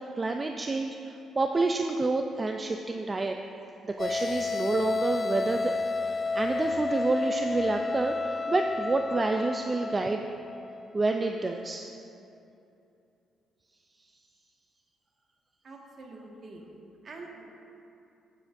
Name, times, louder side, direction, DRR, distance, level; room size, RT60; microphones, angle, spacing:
voice 1, 0.0-3.4 3.8-5.8 6.0-10.2 10.9-11.9, right 3 dB, 25° right, 4 dB, 0.4 m, -29 dB
sound 1, 4.0-10.9, left 3 dB, 40° left, 0.5 m, -31 dB
voice 2, 15.6-16.6 17.0-17.4, right 3 dB, 50° right, -1 dB, 1.7 m, -45 dB
16.5 x 7.5 x 2.6 m, 2.7 s
cardioid pair, 90°, 0 cm